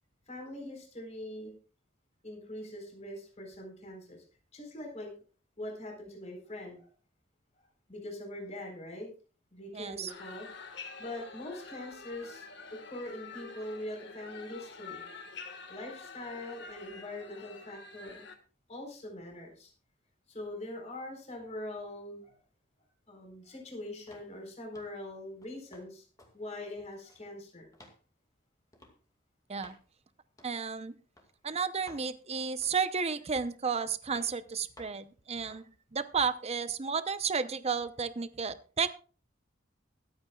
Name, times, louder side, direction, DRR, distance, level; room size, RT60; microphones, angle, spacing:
voice 1, 0.3-1.5 2.2-4.2 4.5-5.1 5.6-6.9 7.9-9.1 9.5-10.5 11.0-12.4 12.7-15.1 15.7-18.3 18.7-19.7 20.3-22.4 23.1-26.0 26.3-27.7, left 1 dB, 35° left, 1 dB, 4.2 m, -42 dB
voice 2, 9.7-10.1 29.5-29.8 30.4-30.9 31.4-38.9, right 5 dB, 35° right, 12 dB, 0.7 m, -32 dB
sound 1, 10.1-18.3, left 4 dB, 65° left, 1.7 m, -47 dB
sound 2, 24.1-24.3 24.7-25.0 25.4-25.9 26.2-26.3 26.7-27.3 27.7-28.0 28.7-29.0 29.6-29.8 30.4-30.6 31.2-31.3 31.9-32.1 32.6-32.9 33.4-33.6 34.1-34.3 34.8-35.0 35.5-35.7 36.2-36.4, left 1 dB, 20° left, 2.2 m, -55 dB
23.5 x 8.7 x 2.4 m, 0.39 s
head